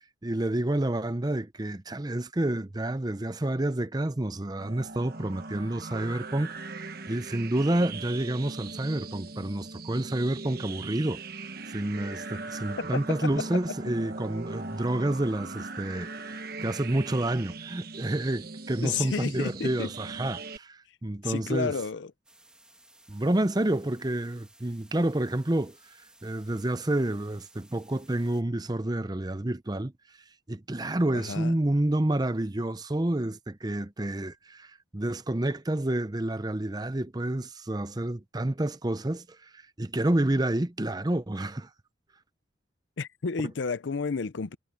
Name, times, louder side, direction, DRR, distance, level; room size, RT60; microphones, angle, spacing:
voice 1, 0.0-11.2 11.7-21.7 23.1-25.8 26.2-29.9 30.5-41.7, right 1 dB, 20° right, 0.7 m, -29 dB
sound 1, 4.6-20.6, right 3 dB, 50° right, 1.2 m, -40 dB
voice 2, 12.9-13.3 18.8-19.9 21.2-22.1 31.1-31.5 43.0-44.6, left 5 dB, 70° left, 0.6 m, -31 dB
sound 2, 22.2-28.4, right 1 dB, 5° right, 1.8 m, -58 dB
head